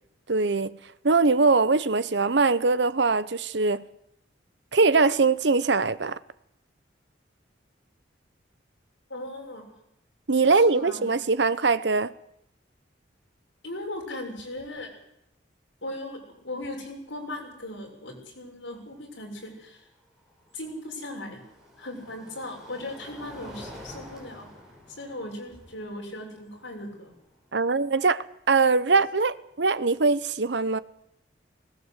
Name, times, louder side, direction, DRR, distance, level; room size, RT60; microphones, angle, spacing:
voice 1, 0.3-0.8 1.0-3.8 4.7-6.2 10.3-12.1 27.5-30.8, right 4 dB, 65° right, 0.9 m, -22 dB
voice 2, 9.1-9.7 10.5-11.2 13.6-14.9 15.8-16.2 16.4-19.8 20.5-21.4 21.8-24.5 24.9-27.1, left 1 dB, 85° left, 6.7 m, -38 dB
sound 1, 14.0-14.1 14.4-14.8 16.6-16.7 19.7-27.8, equal, ahead, 6.6 m, -48 dB
20.0 x 18.5 x 8.2 m
head